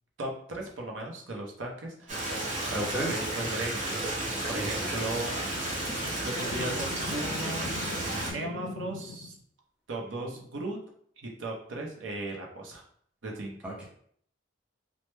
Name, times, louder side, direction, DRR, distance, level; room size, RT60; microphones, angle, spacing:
voice 1, 0.2-2.3 2.6-4.1 4.5-5.4 6.2-7.7 8.3-9.4 9.9-10.8 11.2-12.8 13.2-13.6, right 2 dB, 85° right, 0 dB, 0.6 m, -36 dB
Stream, 2.1-8.3, right 1 dB, 40° right, 0.8 m, -32 dB
voice 2, 2.7-3.2 4.5-5.1 10.2-10.3 13.6-13.8, right 1 dB, 5° right, -4 dB, 0.6 m, -35 dB
sound 1, 4.9-9.3, left 3 dB, 70° left, 0.3 m, -42 dB
3.1 x 2.1 x 3.1 m, 0.62 s
head